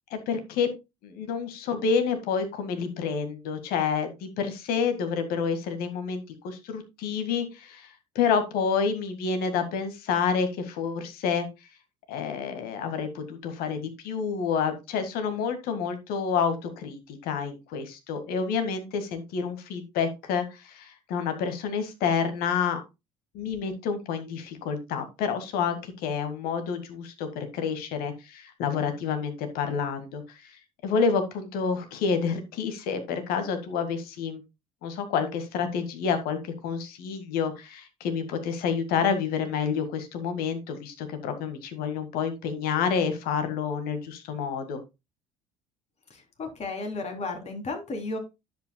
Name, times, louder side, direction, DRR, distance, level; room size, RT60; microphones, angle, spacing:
voice 1, 0.1-0.7 1.0-11.5 12.1-22.8 23.3-30.5 30.8-34.4 34.8-44.8, left 6 dB, 60° left, 8 dB, 1.8 m, -29 dB
voice 2, 46.1-48.2, left 3 dB, 40° left, 4 dB, 3.3 m, -34 dB
10.0 x 8.0 x 2.3 m, 0.23 s
figure-of-eight pair, 60°, 17 cm